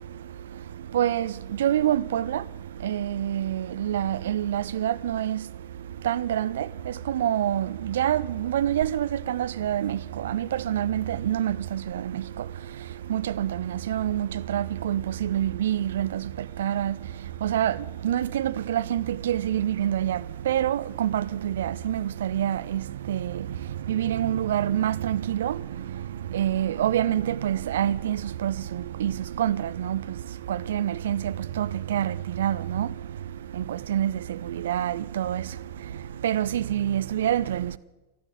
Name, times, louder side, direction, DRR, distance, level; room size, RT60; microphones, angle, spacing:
voice 1, 0.0-37.8, right 11 dB, 60° right, 0.5 m, -27 dB
13.5 x 12.0 x 8.1 m
figure-of-eight pair, 90°, 0 cm